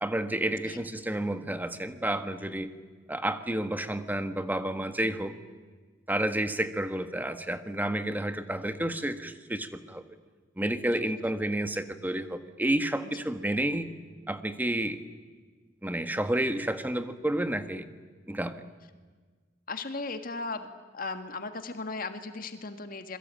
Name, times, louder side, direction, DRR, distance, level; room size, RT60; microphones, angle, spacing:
voice 1, 0.0-2.7 3.1-5.3 6.1-10.0 10.6-13.9 14.3-15.0 15.8-17.9 18.3-18.6, right 1 dB, 10° right, 9 dB, 1.6 m, -30 dB
voice 2, 19.7-20.7 20.9-23.2, left 3 dB, 50° left, 8 dB, 1.8 m, -36 dB
27.5 x 22.5 x 9.1 m, 1.4 s
head